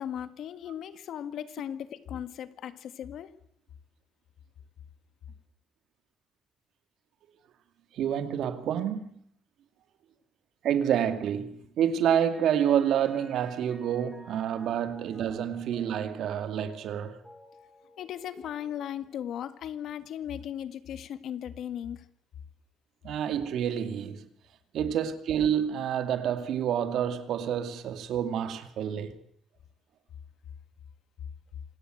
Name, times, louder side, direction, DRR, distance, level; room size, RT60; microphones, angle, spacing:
voice 1, 0.0-3.3 18.0-22.1, left 10 dB, 75° left, 1.7 m, -37 dB
voice 2, 7.9-9.2 10.6-17.2 23.0-24.3 24.7-29.2, right 9 dB, 75° right, 2.3 m, -28 dB
Mallet percussion, 12.0-19.8, equal, ahead, 7.1 m, -55 dB
27.0 x 17.5 x 7.8 m
cardioid pair, 90°, 0 cm